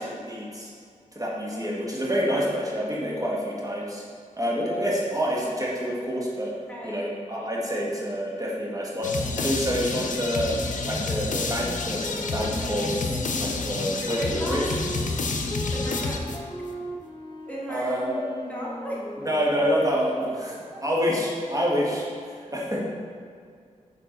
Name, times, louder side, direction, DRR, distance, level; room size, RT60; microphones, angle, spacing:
voice 1, 0.3-0.7 1.1-4.0 4.4-6.5 6.8-9.1 9.4-10.5 10.8-12.9 13.4-14.6 17.7-18.2 19.2-20.6 20.8-22.8, equal, 25° right, -5 dB, 1.6 m, -27 dB
voice 2, 6.7-7.0 14.0-14.6 15.7-16.5 17.5-17.9 18.4-19.0 20.7-20.8, equal, 10° left, -5 dB, 1.5 m, -35 dB
sound 1, 9.0-16.7, left 3 dB, 70° left, 0.6 m, -29 dB
Wind instrument woodwind instrument, 11.8-20.2, left 1 dB, 35° left, 1.6 m, -38 dB
6.8 x 4.7 x 4.0 m, 2.2 s
cardioid pair, 50°, 14 cm